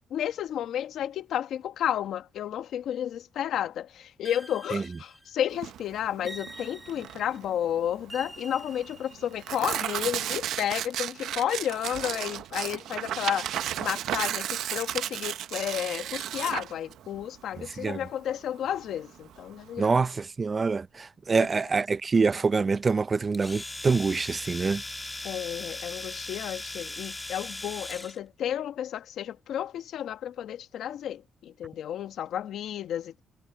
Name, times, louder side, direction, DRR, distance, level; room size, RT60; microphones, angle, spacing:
voice 1, 0.1-13.5 13.8-19.9 21.4-21.5 25.2-33.2, left 10 dB, 75° left, 1.5 m, -32 dB
sound 1, 4.3-5.6 6.3-7.4 8.1-9.6, right 1 dB, 10° right, 4.5 m, -46 dB
Tearing, 5.5-19.8, right 11 dB, 80° right, 0.8 m, -34 dB
voice 2, 19.8-24.8, right 4 dB, 35° right, 0.6 m, -25 dB
Domestic sounds home sounds, 23.3-28.2, left 2 dB, 15° left, 2.1 m, -38 dB
cardioid pair, 90°, 0 cm